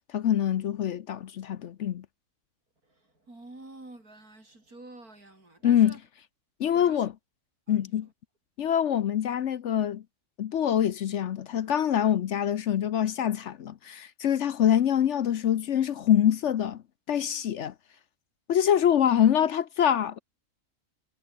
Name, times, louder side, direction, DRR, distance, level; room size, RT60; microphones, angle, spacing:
voice 1, 0.1-2.1 5.6-6.0 6.6-7.1 7.7-8.1 8.6-10.0 10.4-16.8 17.1-17.7 18.5-20.2, left 10 dB, 60° left, 0.9 m, -25 dB
voice 2, 2.8-6.0 6.7-7.1 7.7-7.9 17.3-17.5, right 2 dB, 85° right, 7.3 m, -49 dB
omnidirectional pair, 1.5 m